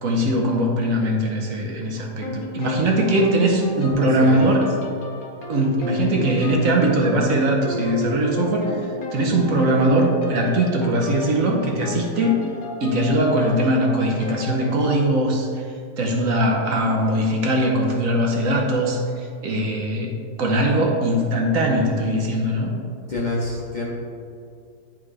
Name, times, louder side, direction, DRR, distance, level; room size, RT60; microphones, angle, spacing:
voice 1, 0.0-4.7 5.5-8.7 9.1-12.4 12.8-15.6 16.0-22.7, right 1 dB, 65° right, 0 dB, 1.1 m, -21 dB
sound 1, 2.2-15.0, left 1 dB, 70° left, 1.3 m, -34 dB
voice 2, 4.2-4.7 23.1-23.9, left 2 dB, 40° left, -5 dB, 0.7 m, -27 dB
10.0 x 3.6 x 3.3 m, 2.3 s
omnidirectional pair, 1.6 m